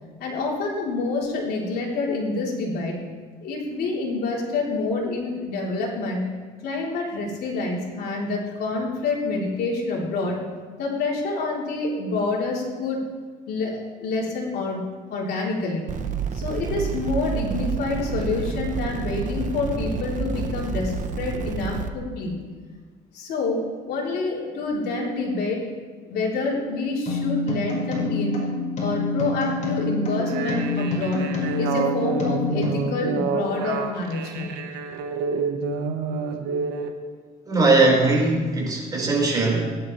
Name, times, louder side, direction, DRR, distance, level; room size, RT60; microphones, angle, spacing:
voice 1, 0.2-3.0 3.4-6.3 6.6-10.4 10.8-13.0 13.5-14.8 15.1-15.9 16.3-22.3 23.1-25.6 26.1-28.4 28.8-31.3 31.6-34.5, left 3 dB, 70° left, -3 dB, 3.5 m, -27 dB
sound 1, 15.9-21.9, right 6 dB, 50° right, 0.9 m, -29 dB
sound 2, 27.1-32.8, left 2 dB, 45° left, 5.0 m, -27 dB
sound 3, 30.2-36.9, right 5 dB, 90° right, 1.3 m, -28 dB
voice 2, 37.4-39.7, right 2 dB, 20° right, -3 dB, 4.8 m, -20 dB
20.5 x 11.0 x 3.3 m, 1.5 s
cardioid pair, 110°, 17 cm